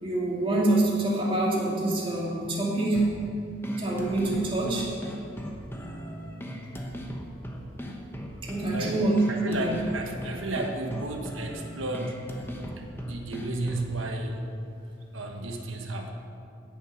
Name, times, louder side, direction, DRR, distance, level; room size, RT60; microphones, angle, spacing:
voice 1, 0.0-3.0 3.8-4.9 8.4-9.7 12.6-12.7, right 2 dB, 25° right, -4 dB, 2.4 m, -26 dB
sound 1, 2.9-14.0, equal, 10° left, 1.0 m, -38 dB
voice 2, 9.3-12.2 13.0-14.4 15.1-16.1, right 2 dB, 85° right, 2 dB, 1.3 m, -32 dB
16.5 x 7.2 x 5.8 m, 2.5 s
head